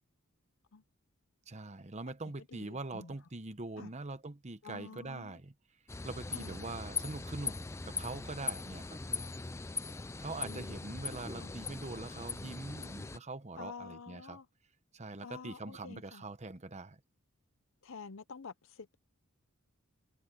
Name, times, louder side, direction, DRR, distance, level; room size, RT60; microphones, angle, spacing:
voice 1, 1.5-5.5 6.0-7.6 7.8-9.0 10.2-14.4 14.9-17.0, right 2 dB, 30° right, 1.0 m, -43 dB
voice 2, 2.5-3.2 3.8-3.9 4.6-5.4 6.3-6.6 10.4-10.8 11.4-11.5 13.6-14.5 15.2-16.2 17.8-18.9, left 5 dB, 60° left, 0.7 m, -49 dB
sound 1, 5.9-13.2, left 4 dB, 10° left, 0.4 m, -40 dB
head